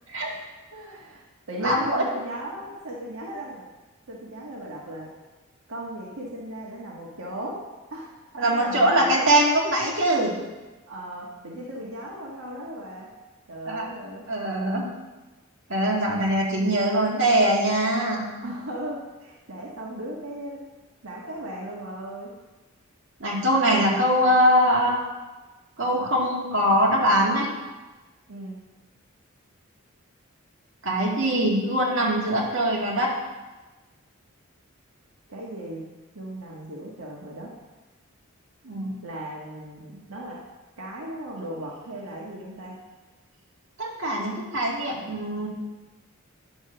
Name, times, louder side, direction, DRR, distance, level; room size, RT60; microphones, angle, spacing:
voice 1, 0.2-1.2 1.5-3.7 4.1-5.1 5.7-7.6 7.9-8.2 8.4-9.4 10.9-13.1 13.5-14.2 18.4-20.6 21.0-22.3 28.3-28.6 35.3-37.5 39.0-40.4 40.8-42.8, right 1 dB, 85° right, -4 dB, 1.5 m, -37 dB
voice 2, 1.6-2.0 8.3-10.4 13.6-13.9 14.3-14.9 15.7-18.5 23.2-25.0 25.8-27.5 30.8-33.1 38.6-38.9 43.8-45.5, equal, 60° right, -3 dB, 2.1 m, -22 dB
9.6 x 5.5 x 6.7 m, 1.2 s
head